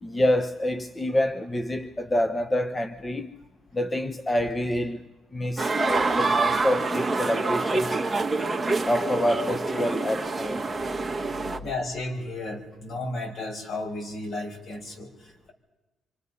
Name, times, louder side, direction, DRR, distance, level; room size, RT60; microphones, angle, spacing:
voice 1, 0.0-3.3 3.7-5.0 5.3-8.0 8.9-10.7, left 1 dB, 20° left, 1.0 m, -27 dB
sound 1, 5.6-11.6, right 3 dB, 15° right, 1.6 m, -26 dB
voice 2, 11.6-15.5, left 2 dB, 60° left, 5.6 m, -34 dB
27.0 x 25.5 x 5.6 m
cardioid pair, 90°, 0 cm